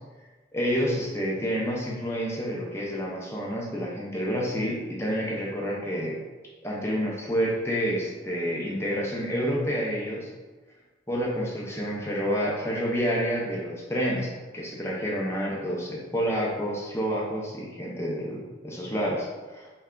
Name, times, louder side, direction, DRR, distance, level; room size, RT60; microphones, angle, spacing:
voice 1, 0.5-6.2 6.6-10.3 11.1-14.3 14.5-19.7, equal, 15° left, -3 dB, 0.5 m, -29 dB
3.3 x 2.2 x 3.6 m, 1.2 s
head